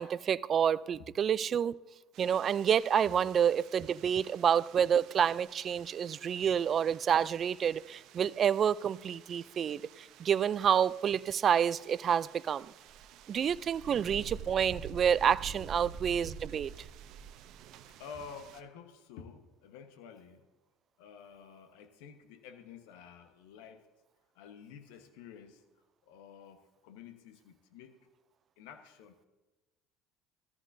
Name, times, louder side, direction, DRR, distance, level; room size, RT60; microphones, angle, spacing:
voice 1, 0.0-1.8 2.2-12.7 13.3-16.7, right 8 dB, 45° right, 0.4 m, -28 dB
sound 1, 2.1-18.6, right 7 dB, 60° right, 0.8 m, -49 dB
voice 2, 18.0-20.5 21.0-23.8 24.3-25.6 26.0-28.1 28.6-29.1, left 6 dB, 75° left, 1.1 m, -50 dB
18.0 x 14.0 x 2.7 m
hypercardioid pair, 70°, 0 cm